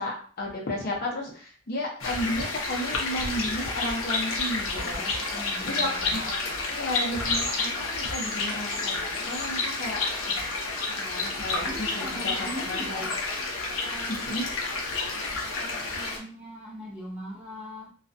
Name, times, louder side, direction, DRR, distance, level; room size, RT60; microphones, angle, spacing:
voice 1, 0.0-5.0 5.6-10.4 11.0-13.1 14.1-14.5, left 1 dB, 50° left, 0.7 m, -33 dB
sound 1, 2.0-16.2, left 3 dB, 90° left, 0.7 m, -30 dB
voice 2, 4.7-6.3 11.6-13.1 13.8-14.4 15.6-17.9, equal, 5° right, 0.5 m, -40 dB
2.4 x 2.2 x 2.5 m
head